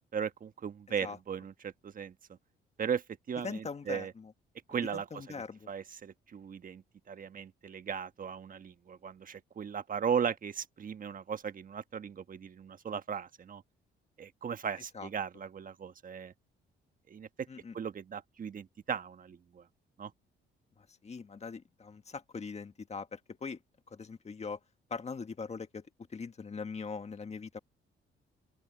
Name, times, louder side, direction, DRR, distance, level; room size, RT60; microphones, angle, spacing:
voice 1, 0.1-2.1 2.8-4.1 4.7-5.3 5.7-13.6 14.2-16.3 17.1-17.3 17.7-19.6 20.0-20.1, right 7 dB, 45° right, 1.3 m, -37 dB
voice 2, 3.4-4.3 4.9-5.7 14.9-15.1 17.5-17.7 20.8-23.6 23.9-24.6 24.9-27.6, left 5 dB, 35° left, 1.7 m, -41 dB
open air
cardioid pair, 90°, 20 cm